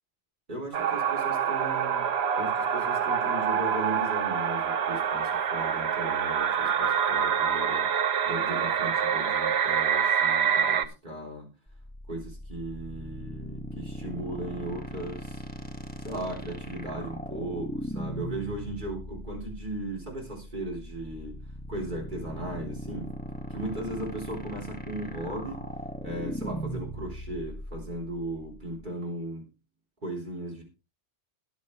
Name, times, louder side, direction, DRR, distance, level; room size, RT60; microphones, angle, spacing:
voice 1, 0.5-2.1 2.4-7.9 8.2-11.5 12.1-15.4 16.0-21.4 21.7-23.1 23.5-25.7 26.0-29.5 30.0-30.6, right 1 dB, 40° right, 0 dB, 4.0 m, -37 dB
sound 1, 0.7-10.9, right 8 dB, 60° right, 1.1 m, -26 dB
sound 2, 11.7-28.9, right 1 dB, 10° left, 1.8 m, -38 dB
21.0 x 7.3 x 3.2 m, 0.30 s
omnidirectional pair, 1.2 m